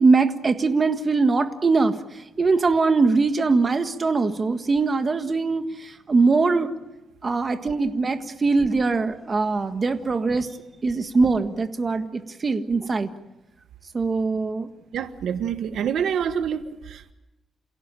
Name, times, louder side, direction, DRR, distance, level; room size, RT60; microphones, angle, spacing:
voice 1, 0.0-6.7 7.2-10.5 10.8-13.1 13.9-14.7, right 4 dB, 35° right, 7 dB, 1.6 m, -22 dB
voice 2, 14.9-17.1, right 8 dB, 80° right, 9 dB, 1.4 m, -27 dB
28.5 x 17.0 x 9.1 m, 0.97 s
cardioid pair, 120°, 0 cm